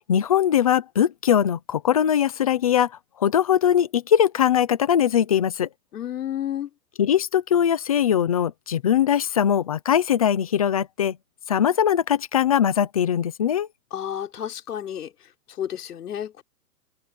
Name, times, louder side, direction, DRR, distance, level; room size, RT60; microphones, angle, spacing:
voice 1, 0.1-2.9 3.2-5.7 7.0-11.2 11.5-13.7, left 9 dB, 25° left, 0.7 m, -21 dB
voice 2, 5.9-6.7 13.9-15.1 15.6-16.4, left 10 dB, 65° left, 5.3 m, -31 dB
open air
hypercardioid pair, 175°, 49 cm